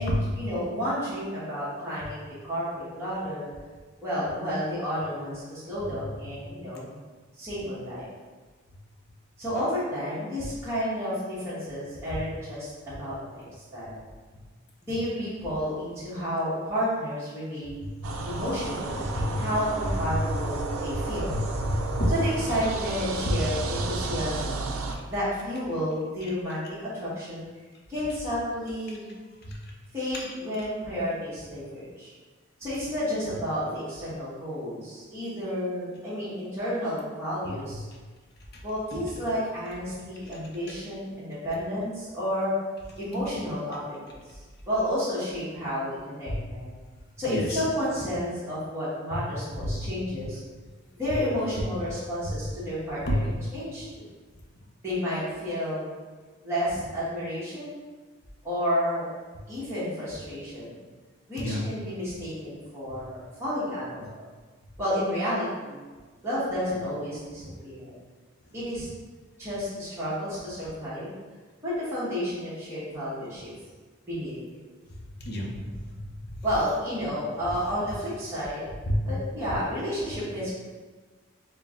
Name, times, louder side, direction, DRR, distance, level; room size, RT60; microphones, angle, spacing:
voice 1, 0.0-3.5 4.0-7.0 7.3-8.1 9.4-13.4 13.7-14.0 14.8-17.8 18.2-21.3 22.1-24.7 25.0-27.5 27.9-29.1 29.9-32.1 32.6-37.8 38.6-42.5 43.0-44.4 44.7-46.7 47.2-50.4 50.9-54.1 54.8-55.9 56.4-57.8 58.4-59.1 59.5-60.8 61.3-64.0 64.8-65.8 66.2-68.0 68.5-68.9 69.4-71.2 71.6-73.5 74.1-74.3 76.4-78.6 79.0-80.5, equal, 15° right, -11 dB, 1.1 m, -31 dB
sound 1, 18.0-25.0, right 3 dB, 85° right, 0.4 m, -33 dB
voice 2, 21.3-22.1 23.7-23.8 29.4-29.6 46.3-46.4 47.3-47.6 49.1-49.2 49.6-49.9 53.1-53.2 61.4-61.6 75.2-75.5 76.0-76.4 78.9-79.0, equal, 50° left, -1 dB, 0.7 m, -28 dB
4.4 x 2.1 x 3.6 m, 1.4 s
head